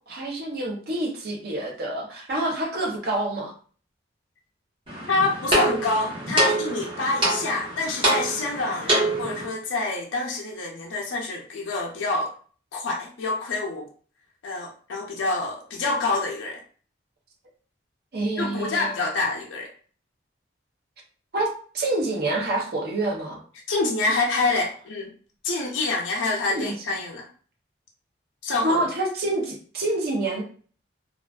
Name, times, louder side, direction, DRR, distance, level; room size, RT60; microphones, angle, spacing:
voice 1, 0.1-3.5 18.1-19.0 21.3-23.4 26.5-26.7 28.6-30.4, right 2 dB, 55° right, 0 dB, 0.6 m, -27 dB
sound 1, 4.9-9.5, right 1 dB, 30° right, 1.0 m, -25 dB
voice 2, 5.1-12.3 12.7-13.9 14.4-16.6 18.4-19.7 23.7-25.1 25.4-27.3 28.4-28.8, left 3 dB, 85° left, 0 dB, 0.4 m, -27 dB
2.4 x 2.3 x 2.2 m, 0.43 s
head